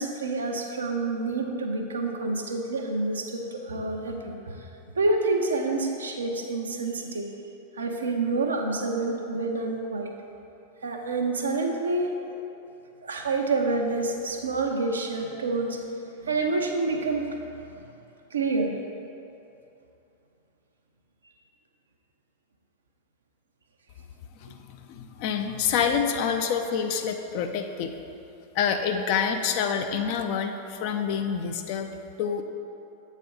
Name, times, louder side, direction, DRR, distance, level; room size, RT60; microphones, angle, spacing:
voice 1, 0.0-4.6 5.0-7.3 7.8-10.1 10.8-12.4 13.0-15.8 16.2-17.4 17.7-17.9 18.3-18.7, right 3 dB, 70° right, 2 dB, 0.7 m, -28 dB
voice 2, 24.4-27.9 28.5-31.9 32.2-32.4, left 7 dB, 45° left, 6 dB, 0.5 m, -27 dB
7.5 x 4.2 x 5.2 m, 2.8 s
figure-of-eight pair, 90°, 0 cm